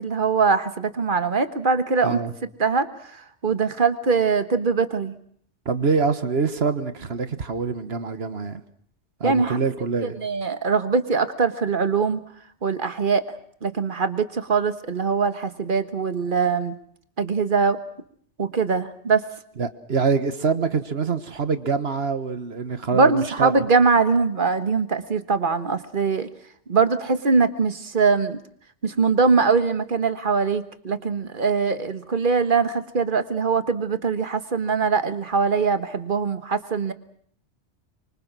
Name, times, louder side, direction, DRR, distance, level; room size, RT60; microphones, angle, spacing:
voice 1, 0.0-2.2 2.6-5.2 9.2-9.6 10.0-12.2 12.6-13.2 13.6-16.7 17.2-17.8 18.4-19.2 22.9-26.3 26.7-28.4 28.8-36.9, right 4 dB, 45° right, 1.6 m, -22 dB
voice 2, 5.6-8.6 9.2-10.2 19.6-23.5, right 5 dB, 65° right, 1.6 m, -25 dB
25.0 x 24.5 x 6.2 m
omnidirectional pair, 1.2 m